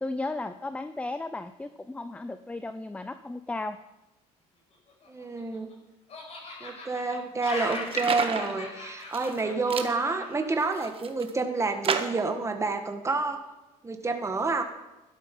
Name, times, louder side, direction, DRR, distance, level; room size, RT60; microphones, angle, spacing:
voice 1, 0.0-3.8, left 2 dB, 10° left, 11 dB, 0.6 m, -35 dB
Laughter, 4.9-5.7 6.1-10.5, left 2 dB, 50° left, 5.9 m, -39 dB
voice 2, 5.1-5.7 6.6-13.4 13.8-14.6, right 3 dB, 20° right, 5 dB, 1.7 m, -29 dB
sound 1, 7.4-8.5 9.0-9.4 9.7-9.9 10.5-11.3 11.8-12.3, right 6 dB, 40° right, 1.4 m, -31 dB
12.5 x 12.0 x 5.5 m, 1.0 s
supercardioid pair, 85°, 14 cm